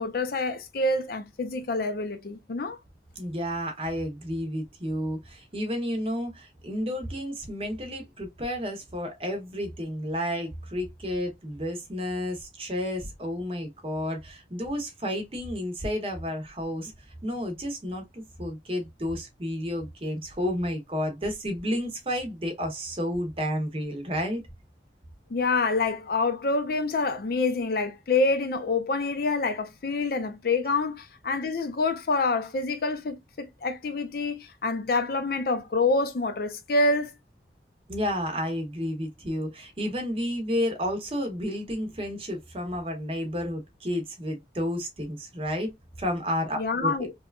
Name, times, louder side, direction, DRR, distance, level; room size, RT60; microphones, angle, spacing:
voice 1, 0.0-2.8 25.3-37.1 46.6-47.1, left 3 dB, 55° left, 0.4 m, -27 dB
voice 2, 3.2-16.9 17.2-24.4 30.7-30.8 37.9-45.7 46.0-47.0, equal, 30° right, 0.7 m, -31 dB
2.9 x 2.2 x 2.3 m
head